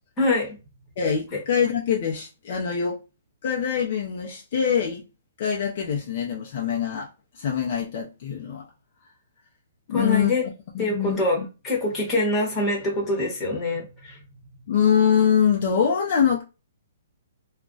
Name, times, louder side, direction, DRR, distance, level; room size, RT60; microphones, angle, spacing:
voice 1, 0.2-0.6 9.9-10.5 10.8-11.4 11.6-14.2, left 2 dB, 15° left, 1.0 m, -24 dB
voice 2, 1.0-3.0 3.4-5.0 5.4-8.6 9.9-10.4 10.7-11.5 14.7-16.4, left 7 dB, 45° left, 0.5 m, -24 dB
2.4 x 2.2 x 3.8 m
hypercardioid pair, 165°, 0 cm